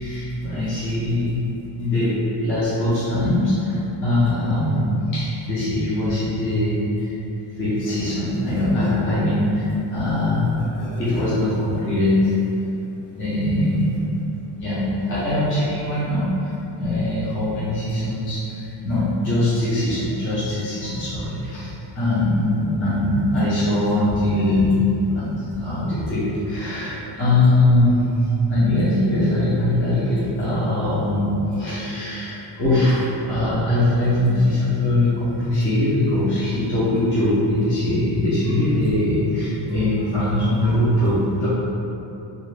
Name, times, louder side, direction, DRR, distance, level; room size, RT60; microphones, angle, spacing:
voice 1, 0.0-1.4 1.8-4.9 5.1-7.1 7.6-12.4 13.2-13.9 14.5-24.8 25.1-28.2 28.5-41.5, left 1 dB, 30° left, -12 dB, 0.6 m, -21 dB
2.6 x 2.5 x 3.2 m, 2.8 s
cardioid pair, 170°, 44 cm